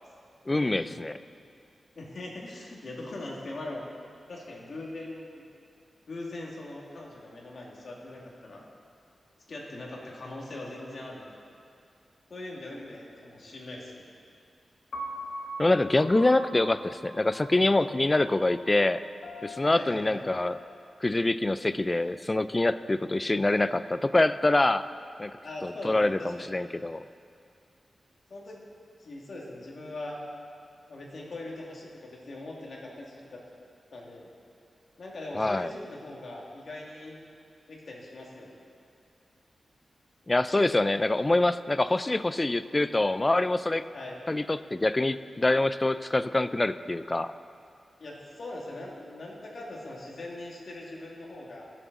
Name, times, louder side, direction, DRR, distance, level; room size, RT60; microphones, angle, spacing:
voice 1, 0.5-1.2 15.6-19.0 19.4-20.6 21.0-24.8 25.2-25.3 25.6-27.0 35.3-35.7 40.3-43.8 44.3-47.3, left 2 dB, 25° left, 13 dB, 0.4 m, -25 dB
voice 2, 2.0-3.8 4.3-5.4 6.1-8.6 9.5-11.3 12.3-14.0 19.7-20.2 25.4-26.5 28.3-28.6 29.0-30.2 30.9-33.4 33.9-34.3 35.0-37.2 37.7-38.6 43.9-44.3 48.0-51.7, left 2 dB, 65° left, -3 dB, 2.5 m, -41 dB
Piano, 14.9-21.1, equal, 85° left, 1.6 m, -42 dB
21.0 x 7.4 x 4.1 m, 2.4 s
wide cardioid pair, 80°, 0 cm